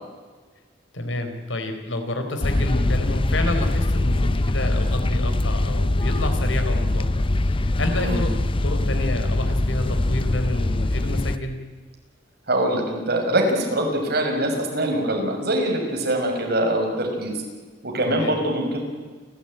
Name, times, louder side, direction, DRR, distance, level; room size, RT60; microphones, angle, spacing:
voice 1, 0.9-8.3 8.6-11.6 18.1-18.3, left 1 dB, 85° left, 6 dB, 4.1 m, -29 dB
sound 1, 2.4-11.4, left 1 dB, 30° left, 0.6 m, -22 dB
voice 2, 12.5-17.3 17.8-18.8, right 1 dB, 55° right, 2 dB, 6.2 m, -23 dB
29.0 x 15.0 x 9.0 m, 1.4 s
head